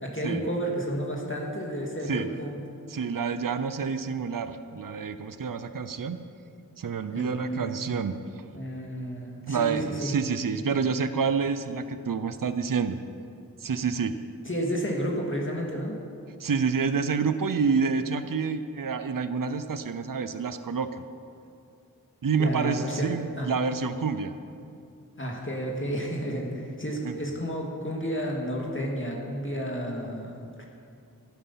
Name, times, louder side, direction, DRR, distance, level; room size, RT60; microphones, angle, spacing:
voice 1, 0.0-2.6 7.1-7.7 8.5-10.1 14.5-15.9 22.4-23.5 25.2-30.6, equal, 35° left, -2 dB, 2.3 m, -31 dB
voice 2, 2.9-6.2 6.8-8.5 9.5-13.0 13.6-14.1 16.4-21.0 22.2-24.3 27.0-27.2, right 5 dB, 70° right, 11 dB, 0.7 m, -28 dB
14.0 x 11.0 x 5.7 m, 2.5 s
wide cardioid pair, 50°, 35 cm